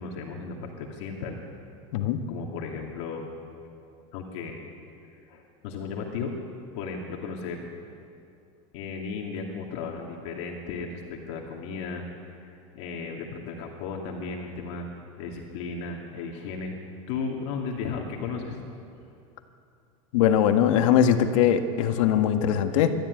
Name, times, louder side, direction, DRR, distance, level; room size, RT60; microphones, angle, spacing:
voice 1, 0.0-1.4 2.3-3.3 4.1-4.6 5.3-6.3 6.7-7.7 8.7-14.9 15.2-16.8 17.1-18.6, left 5 dB, 60° left, 0 dB, 2.7 m, -35 dB
voice 2, 20.1-22.9, left 9 dB, 75° left, 7 dB, 1.7 m, -21 dB
25.0 x 13.5 x 9.9 m, 2.5 s
supercardioid pair, 170°, 17 cm